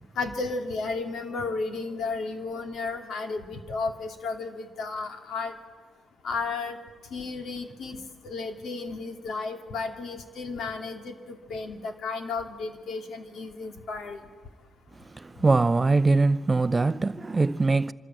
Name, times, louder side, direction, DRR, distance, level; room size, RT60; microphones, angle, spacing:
voice 1, 0.2-5.5 6.2-6.8 7.1-8.0 8.2-14.2, left 4 dB, 65° left, 2.5 m, -33 dB
voice 2, 15.1-17.9, right 3 dB, 25° right, 0.6 m, -22 dB
25.0 x 13.0 x 9.2 m
cardioid pair, 90°, 0 cm